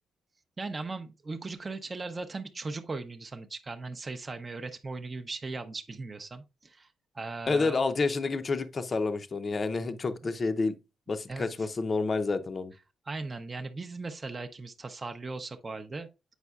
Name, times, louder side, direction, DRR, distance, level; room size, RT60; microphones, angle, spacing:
voice 1, 0.6-6.9 7.1-7.9 11.3-11.7 13.1-16.1, right 3 dB, 25° right, 0.6 m, -38 dB
voice 2, 7.5-10.8 11.1-12.7, left 3 dB, 30° left, 0.6 m, -29 dB
8.0 x 5.3 x 2.4 m
cardioid pair, 120°, 0 cm